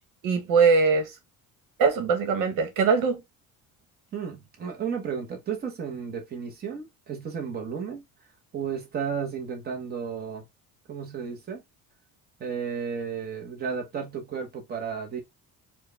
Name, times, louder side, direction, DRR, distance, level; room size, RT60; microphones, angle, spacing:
voice 1, 0.2-1.1 1.8-3.2, right 5 dB, 75° right, 1.2 m, -21 dB
voice 2, 4.1-8.0 8.5-10.4 10.9-11.6 12.4-15.2, right 6 dB, 30° right, 1.0 m, -33 dB
4.5 x 2.3 x 3.2 m
cardioid pair, 175°, 33 cm